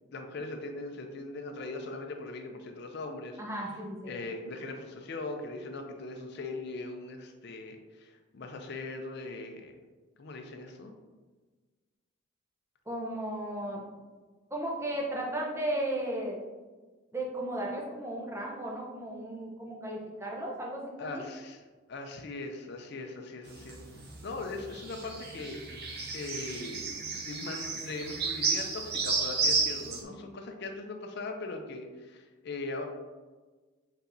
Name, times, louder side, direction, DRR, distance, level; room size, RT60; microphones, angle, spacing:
voice 1, 0.1-3.6 4.0-9.8 10.2-10.9 21.0-21.6 21.9-23.8 24.2-25.9 26.1-32.8, left 2 dB, 55° left, 4 dB, 0.5 m, -40 dB
voice 2, 3.4-4.1 12.9-13.8 14.5-16.4 17.1-21.2 30.0-30.1, right 1 dB, 15° right, -2 dB, 0.7 m, -35 dB
sound 1, 23.5-30.0, right 4 dB, 50° right, 0.7 m, -32 dB
4.5 x 4.0 x 2.6 m, 1.3 s
head